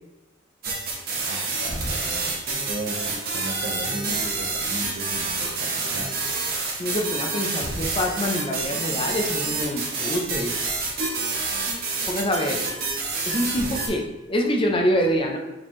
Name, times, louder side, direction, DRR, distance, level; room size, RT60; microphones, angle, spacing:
sound 1, 0.6-13.9, right 3 dB, 50° right, 1.1 m, -28 dB
voice 1, 1.2-2.3 2.6-6.1, right 1 dB, 80° right, 0 dB, 0.9 m, -35 dB
voice 2, 6.8-10.6 12.1-12.7 13.3-14.0 14.3-15.4, equal, 30° left, 2 dB, 0.5 m, -25 dB
4.9 x 3.0 x 3.6 m, 1.1 s
head